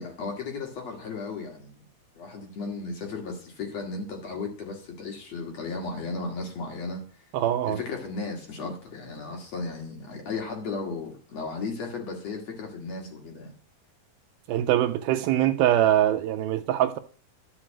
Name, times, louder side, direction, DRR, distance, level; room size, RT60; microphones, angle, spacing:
voice 1, 0.0-1.8 2.2-7.1 7.7-13.6, left 3 dB, 45° left, 2.8 m, -35 dB
voice 2, 7.3-7.8 14.5-17.0, right 12 dB, 75° right, 2.4 m, -23 dB
13.0 x 6.1 x 8.7 m
omnidirectional pair, 4.6 m